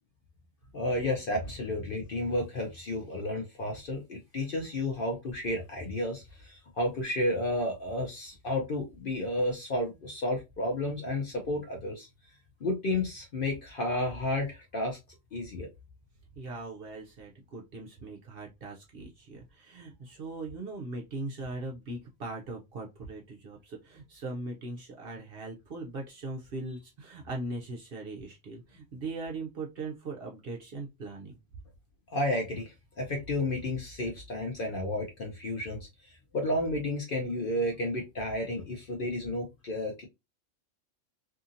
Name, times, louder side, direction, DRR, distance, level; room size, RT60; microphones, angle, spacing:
voice 1, 0.7-12.1 12.6-15.0 15.3-15.7 32.1-35.9 36.3-40.1, left 1 dB, 55° left, 2 dB, 0.7 m, -32 dB
voice 2, 16.4-31.4, right 2 dB, 60° right, 0 dB, 0.7 m, -40 dB
2.7 x 2.6 x 2.5 m, 0.23 s
omnidirectional pair, 1.4 m